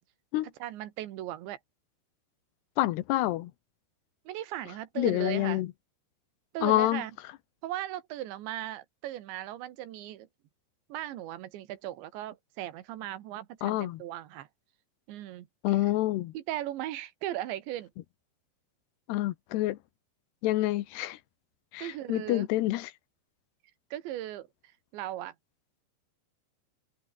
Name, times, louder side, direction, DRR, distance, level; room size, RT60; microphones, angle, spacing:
voice 1, 0.6-1.6 4.3-5.6 6.5-7.1 7.6-10.3 10.9-14.5 15.1-15.8 16.3-17.9 21.8-22.5 23.9-24.5 24.9-25.4, right 13 dB, 85° right, 3.9 m, -37 dB
voice 2, 2.8-3.5 5.0-5.7 6.6-7.0 13.6-14.0 15.6-16.3 19.1-19.8 20.4-21.2 21.7-22.9, left 16 dB, 75° left, 3.0 m, -27 dB
omnidirectional pair, 5.1 m